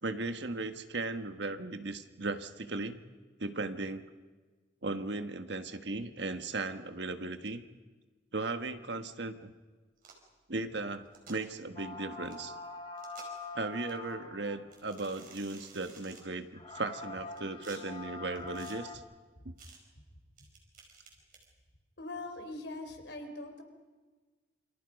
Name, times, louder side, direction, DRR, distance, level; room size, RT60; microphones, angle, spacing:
voice 1, 0.0-3.0 3.4-4.0 4.8-7.6 8.3-9.5 10.5-12.5 13.5-19.0 19.4-19.5, right 3 dB, 70° right, 8 dB, 1.4 m, -37 dB
sound 1, 10.0-10.3 11.0-11.4 12.3-12.4 13.0-13.5 13.9-14.0 14.7-16.2 17.0-17.8 18.4-18.8 19.6-19.8 20.4-21.5, right 5 dB, 50° right, 5.3 m, -53 dB
sound 2, 11.8-14.8 15.7-15.8 16.2-16.3 16.5-19.0, left 3 dB, 30° left, 1.8 m, -44 dB
voice 2, 22.0-23.6, left 2 dB, 70° left, 5 dB, 3.9 m, -42 dB
28.5 x 27.0 x 5.3 m, 1.3 s
head